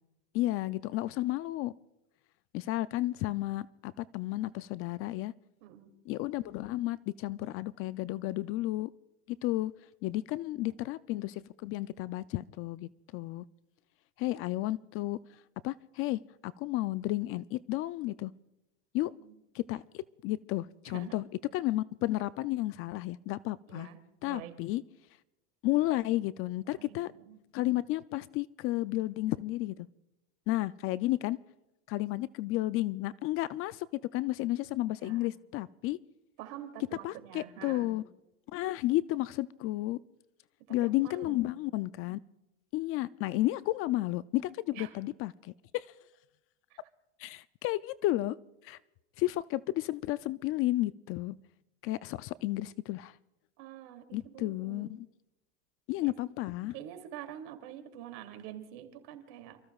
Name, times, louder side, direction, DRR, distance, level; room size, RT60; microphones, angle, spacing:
voice 1, 0.3-1.7 2.5-5.3 6.1-8.9 9.3-9.7 10.0-13.4 14.2-15.2 15.6-18.3 18.9-19.1 19.5-21.2 21.5-23.9 24.2-24.8 25.6-27.1 27.5-29.7 30.5-31.4 31.9-33.9 34.1-36.0 37.0-38.0 38.5-40.0 40.7-42.2 42.7-45.9 47.2-48.3 48.6-48.8 49.2-51.4 51.8-53.2 54.1-55.1 55.9-56.7, left 17 dB, 40° left, 17 dB, 0.4 m, -32 dB
voice 2, 5.6-5.9 10.6-10.8 19.2-19.4 20.8-21.2 23.7-24.0 24.2-24.6 26.6-27.4 35.0-35.3 36.4-37.9 40.7-41.6 44.7-45.0 46.7-46.8 53.6-54.9 56.0-56.1 56.7-59.6, right 11 dB, 65° right, 6 dB, 2.8 m, -47 dB
29.0 x 14.5 x 2.4 m, 0.94 s
supercardioid pair, 120°, 35 cm